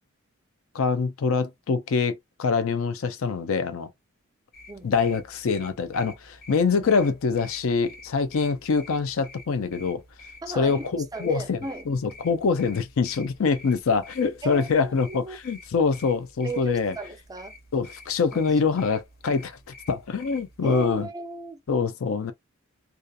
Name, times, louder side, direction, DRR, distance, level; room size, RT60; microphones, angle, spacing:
voice 1, 0.7-3.9 4.8-10.0 10.6-11.6 11.9-16.9 17.7-19.6 19.9-21.1 21.7-22.3, left 5 dB, 75° left, 0.4 m, -24 dB
sound 1, 4.5-21.1, left 2 dB, 50° left, 1.0 m, -49 dB
voice 2, 10.4-10.9 11.1-11.9 14.4-15.4 16.4-17.5 18.3-18.4 20.6-21.6, right 3 dB, 20° right, 0.4 m, -36 dB
2.7 x 2.4 x 2.3 m
head